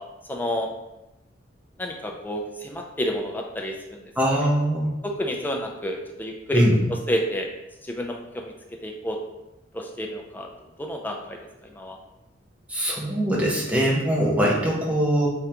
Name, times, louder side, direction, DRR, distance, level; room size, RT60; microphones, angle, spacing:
voice 1, 0.3-0.7 1.8-4.0 5.0-6.6 7.1-7.5 7.9-8.5 8.8-9.2 9.7-10.5 10.8-11.4 11.8-12.0, equal, 10° left, 1 dB, 0.4 m, -29 dB
voice 2, 4.2-4.9 6.5-6.8 12.7-15.3, equal, 10° right, -4 dB, 0.8 m, -22 dB
3.7 x 3.3 x 2.8 m, 0.96 s
head